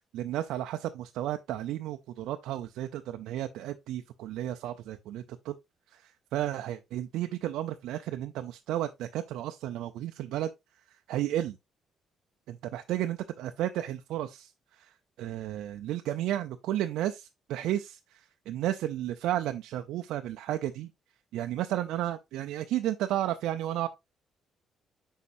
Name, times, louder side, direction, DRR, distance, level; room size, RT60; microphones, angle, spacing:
voice 1, 0.1-5.6 5.9-10.5 10.9-11.6 12.5-20.9 21.3-23.9, right 12 dB, 90° right, 0.5 m, -33 dB
8.4 x 5.6 x 2.6 m
cardioid pair, 100°, 0 cm